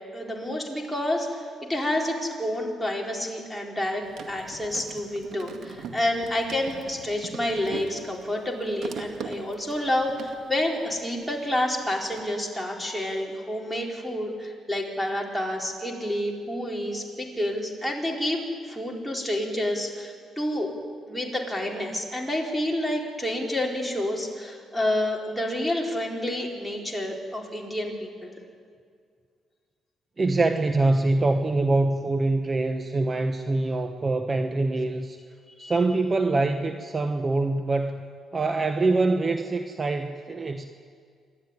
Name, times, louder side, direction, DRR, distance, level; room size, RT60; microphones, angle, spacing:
voice 1, 0.1-1.4 1.7-4.0 4.3-20.7 21.1-28.3 35.6-35.8, left 1 dB, ahead, -2 dB, 4.4 m, -29 dB
sound 1, 4.0-11.6 11.8-12.2, right 6 dB, 70° right, 2.1 m, -41 dB
voice 2, 30.2-35.2 35.6-38.0 38.3-40.7, right 2 dB, 30° right, 6 dB, 1.1 m, -24 dB
27.5 x 12.5 x 9.8 m, 2.1 s
cardioid pair, 90°, 0 cm